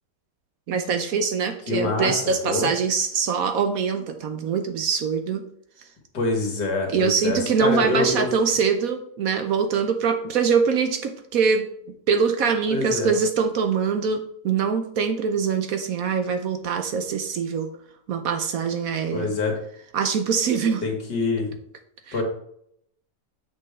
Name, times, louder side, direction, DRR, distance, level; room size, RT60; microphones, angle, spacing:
voice 1, 0.7-5.4 6.9-11.7 12.1-17.7 18.1-19.3 19.9-20.8 22.1-22.2, right 6 dB, 65° right, 7 dB, 1.0 m, -23 dB
voice 2, 1.7-2.7 6.1-8.3 12.7-13.1 19.1-19.5 20.8-21.5 22.1-22.2, left 3 dB, 80° left, 1 dB, 2.4 m, -25 dB
7.7 x 6.1 x 3.6 m, 0.71 s
omnidirectional pair, 1.8 m